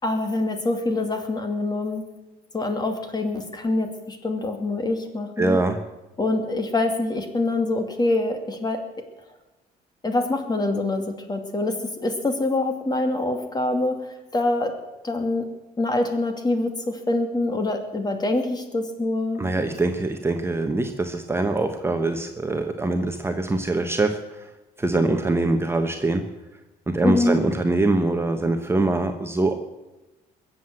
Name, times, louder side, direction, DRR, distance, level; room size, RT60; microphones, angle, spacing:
voice 1, 0.0-2.1 2.5-5.6 6.2-8.8 10.0-14.1 14.3-14.7 15.0-15.5 15.8-19.7 27.0-27.4, left 2 dB, 25° left, 6 dB, 2.5 m, -25 dB
voice 2, 5.4-5.8 19.4-24.5 24.8-26.2 26.9-29.6, right 2 dB, 15° right, 5 dB, 1.1 m, -23 dB
21.5 x 7.9 x 7.7 m, 1.1 s
cardioid pair, 110°, 17 cm